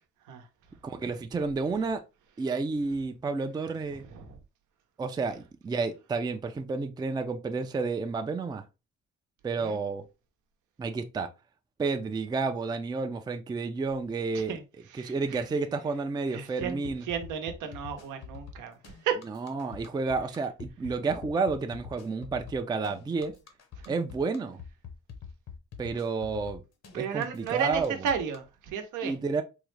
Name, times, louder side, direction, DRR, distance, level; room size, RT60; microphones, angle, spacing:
voice 1, 0.8-2.0 2.4-4.1 5.0-8.6 9.4-10.0 10.8-11.3 11.8-14.6 14.9-17.0 19.3-23.3 23.9-24.6 25.8-26.6 26.9-27.9 29.0-29.4, right 4 dB, 15° right, 0.3 m, -30 dB
voice 2, 14.9-15.4 16.3-18.8 19.0-19.2 23.8-23.9 26.9-29.1, right 7 dB, 85° right, 0.7 m, -33 dB
sound 1, 16.6-28.4, left 6 dB, 60° left, 0.8 m, -45 dB
3.6 x 2.1 x 3.1 m
cardioid pair, 90°, 30 cm